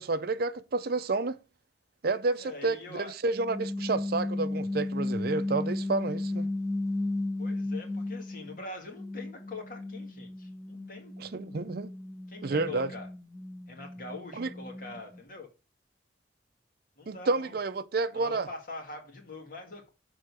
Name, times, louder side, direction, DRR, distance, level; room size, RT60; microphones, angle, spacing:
voice 1, 0.0-1.4 2.0-6.5 11.2-11.9 12.4-12.9 14.3-14.5 17.1-18.5, right 3 dB, 55° right, 0.5 m, -30 dB
voice 2, 2.4-3.1 7.4-11.1 12.3-13.1 13.7-15.5 17.0-17.6 18.1-19.9, left 3 dB, 50° left, 2.0 m, -43 dB
sound 1, 3.3-8.6 9.0-15.2, left 2 dB, 15° left, 0.9 m, -35 dB
6.7 x 3.8 x 6.0 m
head